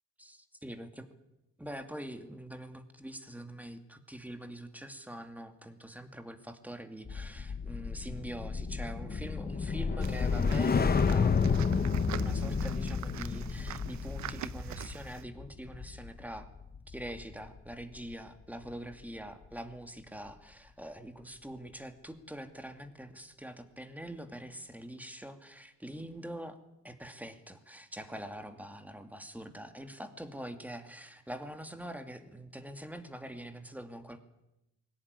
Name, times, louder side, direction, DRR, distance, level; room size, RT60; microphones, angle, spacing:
voice 1, 0.2-1.1 1.6-16.5 16.9-26.6 26.8-34.2, right 1 dB, 5° right, 7 dB, 2.4 m, -44 dB
sound 1, 7.1-17.5 17.8-18.1, left 5 dB, 30° left, 1.3 m, -31 dB
sound 2, 10.0-15.2, right 11 dB, 65° right, 0.9 m, -44 dB
21.0 x 17.5 x 9.7 m, 0.90 s
cardioid pair, 90°, 30 cm